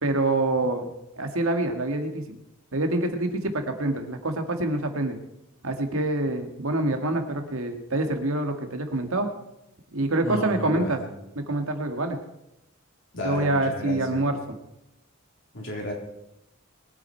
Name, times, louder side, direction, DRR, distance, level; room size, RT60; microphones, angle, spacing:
voice 1, 0.0-2.4 2.7-5.2 5.6-9.3 9.9-11.0 11.4-12.2 13.2-14.4, right 2 dB, 70° right, 6 dB, 1.8 m, -26 dB
voice 2, 10.2-11.1 13.1-14.3 15.5-15.9, left 1 dB, 60° left, -1 dB, 3.6 m, -33 dB
22.0 x 9.0 x 4.5 m, 0.87 s
head